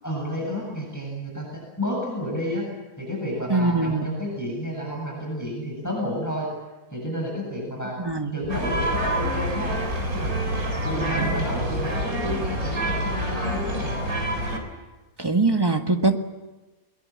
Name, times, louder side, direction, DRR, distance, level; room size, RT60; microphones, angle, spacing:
voice 1, 0.0-2.6 3.0-6.5 6.9-7.9 8.3-9.8 10.1-10.3 10.8-14.0, left 1 dB, 10° left, -1 dB, 7.9 m, -30 dB
voice 2, 3.5-4.1 8.0-8.3 10.9-11.3 15.2-16.2, right 3 dB, 15° right, 5 dB, 1.7 m, -23 dB
sound 1, 8.5-14.6, right 1 dB, 80° right, 4.3 m, -27 dB
22.5 x 22.0 x 8.7 m, 1.2 s
omnidirectional pair, 1.5 m